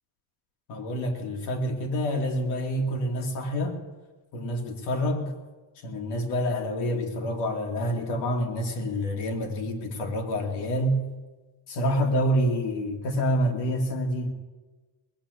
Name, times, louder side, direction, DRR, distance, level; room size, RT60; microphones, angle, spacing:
voice 1, 0.7-3.7 4.3-5.3 5.8-11.0 11.7-14.3, equal, 85° left, 3 dB, 2.5 m, -27 dB
19.5 x 8.3 x 7.8 m, 1.2 s
cardioid pair, 170°, 41 cm